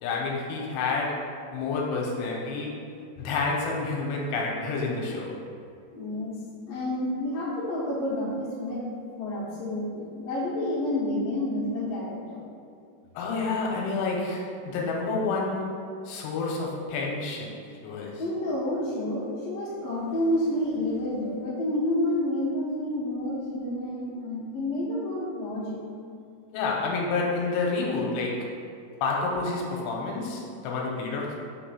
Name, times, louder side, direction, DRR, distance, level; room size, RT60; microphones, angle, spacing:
voice 1, 0.0-2.8 3.2-5.4 13.2-18.2 26.5-28.5 29.0-31.4, left 3 dB, 85° left, -1 dB, 2.8 m, -29 dB
voice 2, 5.9-6.4 6.7-8.9 9.2-12.4 18.2-25.8, left 1 dB, 60° left, -7 dB, 1.8 m, -29 dB
6.2 x 3.0 x 5.8 m, 2.4 s
omnidirectional pair, 4.9 m